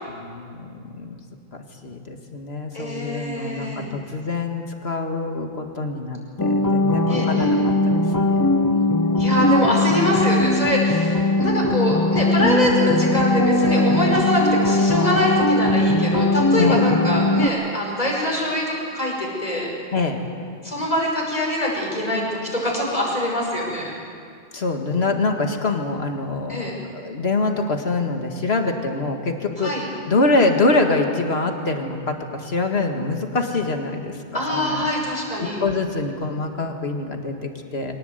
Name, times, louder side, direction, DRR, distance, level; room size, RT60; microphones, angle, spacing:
voice 1, 0.2-1.2 1.5-8.5 16.5-16.8 19.9-20.2 24.5-26.6 26.9-29.7 30.1-34.1 34.5-34.9 35.4-38.0, left 3 dB, 85° left, 4 dB, 2.1 m, -25 dB
voice 2, 2.7-3.9 7.1-7.6 9.2-19.7 20.6-23.9 26.5-26.8 29.6-29.8 34.3-35.6, equal, 40° left, -2 dB, 5.6 m, -24 dB
sound 1, 6.4-17.5, left 2 dB, 20° left, 0.7 m, -19 dB
24.0 x 18.5 x 8.0 m, 2.3 s
omnidirectional pair, 1.0 m